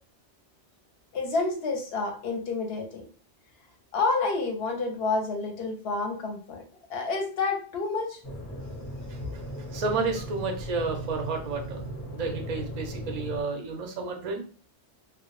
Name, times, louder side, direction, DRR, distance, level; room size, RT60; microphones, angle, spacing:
voice 1, 1.1-3.0 3.9-6.6 6.9-8.2, left 3 dB, 65° left, 2 dB, 0.7 m, -29 dB
sound 1, 8.2-13.4, right 1 dB, 40° left, 0.3 m, -37 dB
voice 2, 9.1-9.4 9.7-11.8 12.1-14.4, right 4 dB, 55° right, 3 dB, 0.4 m, -31 dB
2.1 x 2.0 x 2.9 m, 0.39 s
omnidirectional pair, 1.2 m